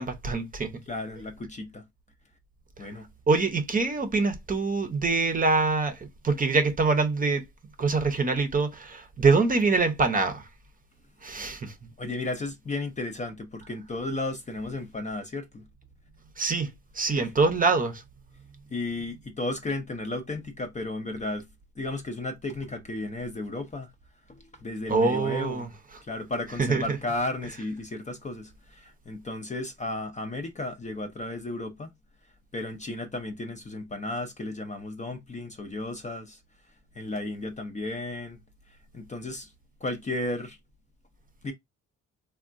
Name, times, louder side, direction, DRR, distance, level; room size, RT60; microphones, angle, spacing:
voice 1, 0.0-0.7 3.3-6.0 6.2-7.4 7.8-10.4 11.2-11.7 16.4-18.0 24.9-25.7 26.6-27.0, right 4 dB, 30° right, 0.7 m, -24 dB
voice 2, 0.9-1.8 2.8-3.1 12.0-15.7 17.1-17.3 18.7-21.5 21.8-23.9 24.3-25.7 26.1-31.9 32.5-36.4 36.9-38.4 38.9-39.5 39.8-40.6 41.4-41.5, left 2 dB, 25° left, 0.5 m, -34 dB
3.5 x 2.3 x 2.5 m
cardioid pair, 90°, 30 cm